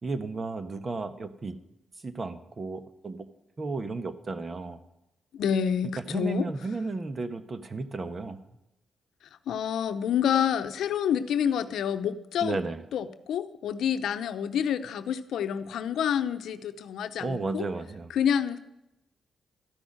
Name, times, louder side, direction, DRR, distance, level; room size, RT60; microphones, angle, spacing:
voice 1, 0.0-1.6 2.0-3.3 3.6-4.8 6.1-8.4 12.4-12.8 17.2-18.1, right 3 dB, 40° right, 10 dB, 1.2 m, -33 dB
voice 2, 5.3-6.5 9.5-12.6 12.9-17.6 18.1-18.6, left 8 dB, 85° left, 10 dB, 0.7 m, -28 dB
13.5 x 6.3 x 8.7 m, 0.88 s
cardioid pair, 70°, 0 cm